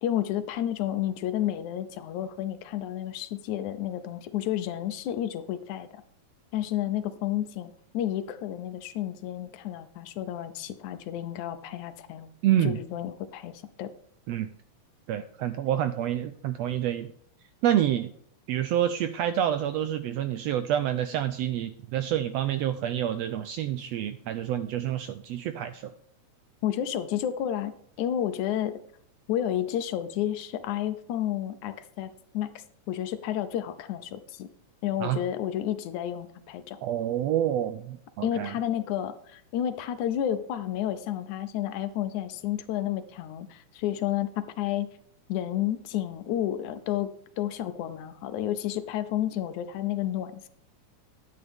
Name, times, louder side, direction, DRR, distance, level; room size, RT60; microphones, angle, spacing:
voice 1, 0.0-6.0 6.5-12.3 12.6-13.9 26.6-28.8 29.3-34.5 34.8-36.8 38.2-44.3 44.6-44.9 45.3-50.5, left 11 dB, 80° left, 12 dB, 2.2 m, -31 dB
voice 2, 12.4-12.8 14.3-14.5 15.1-17.1 17.6-18.1 18.5-25.9 35.0-35.2 36.8-38.5, right 11 dB, 85° right, 10 dB, 1.5 m, -28 dB
11.0 x 8.6 x 3.5 m, 0.65 s
omnidirectional pair, 3.4 m